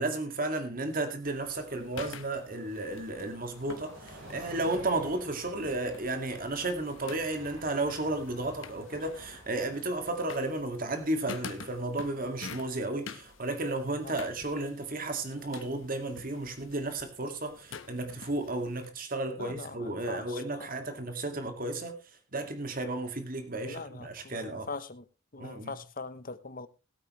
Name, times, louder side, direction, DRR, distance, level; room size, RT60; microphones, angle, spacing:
voice 1, 0.0-22.0 22.3-24.7 25.4-25.8, right 2 dB, 45° right, 2.2 m, -33 dB
sound 1, 1.2-18.9, left 5 dB, 75° left, 1.2 m, -49 dB
Train, 1.2-14.4 14.7-14.8, right 1 dB, 85° right, 5.2 m, -53 dB
voice 2, 19.4-21.0 23.6-25.0 25.3-26.7, left 4 dB, 45° left, 0.9 m, -42 dB
20.5 x 8.7 x 3.2 m
head